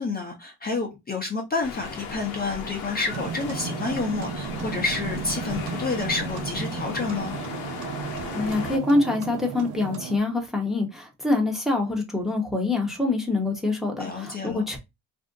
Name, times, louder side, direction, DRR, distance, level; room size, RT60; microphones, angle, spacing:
voice 1, 0.0-7.4 14.0-14.6, left 4 dB, 25° left, 0.8 m, -29 dB
sound 1, 1.6-8.8, left 5 dB, 90° left, 0.8 m, -37 dB
sound 2, 3.1-10.2, right 6 dB, 55° right, 0.7 m, -34 dB
voice 2, 8.3-14.8, left 2 dB, ahead, 0.9 m, -25 dB
2.6 x 2.1 x 3.6 m
cardioid pair, 90°, 36 cm